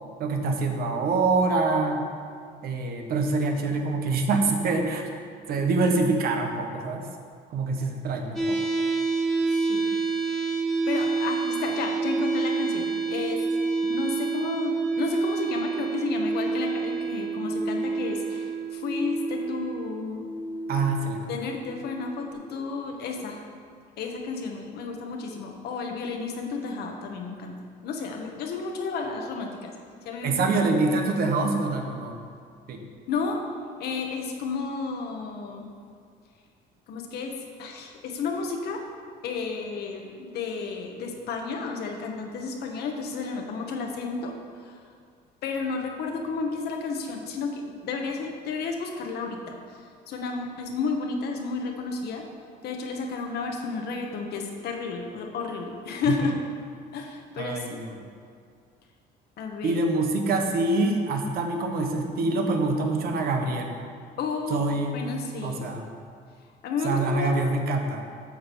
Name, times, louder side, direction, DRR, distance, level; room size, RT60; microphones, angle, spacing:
voice 1, 0.2-2.0 2.6-5.0 5.5-7.0 7.5-8.6 20.7-21.2 30.2-32.2 32.7-32.8 56.1-56.3 57.4-57.9 59.6-63.7 64.5-65.0 65.4-65.9 66.8-68.0, right 3 dB, 65° right, 3 dB, 1.3 m, -25 dB
sound 1, 8.4-22.3, right 4 dB, ahead, 2.0 m, -28 dB
voice 2, 9.4-10.2 10.9-13.4 13.8-20.3 21.3-23.4 24.0-27.5 27.8-29.7 30.0-30.6 33.1-33.4 33.8-35.7 36.9-38.8 39.2-44.3 44.6-44.8 45.4-52.3 52.6-56.4 56.9-57.7 59.4-59.8 64.2-64.6 64.9-65.7 66.6-67.3, left 4 dB, 70° left, 2 dB, 1.4 m, -32 dB
8.7 x 6.0 x 7.0 m, 2.2 s
cardioid pair, 110°, 17 cm